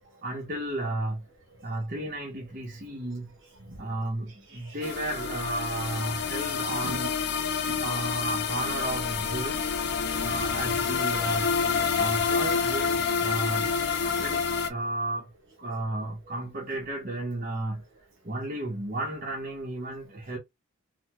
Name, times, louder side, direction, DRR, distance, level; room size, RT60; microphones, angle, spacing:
voice 1, 0.2-1.2 1.6-3.3 3.8-7.1 7.8-9.7 10.2-11.5 12.0-15.3 15.6-17.8 18.2-20.4, right 1 dB, 40° right, 0.9 m, -33 dB
voice 2, 3.5-4.0 4.3-4.9 6.1-6.5 6.8-8.0 11.6-12.3 13.1-13.2 14.1-14.2 16.2-16.3, right 2 dB, 65° right, 1.2 m, -46 dB
sound 1, 4.8-14.7, left 6 dB, 50° left, 0.5 m, -28 dB
4.0 x 2.2 x 3.0 m
head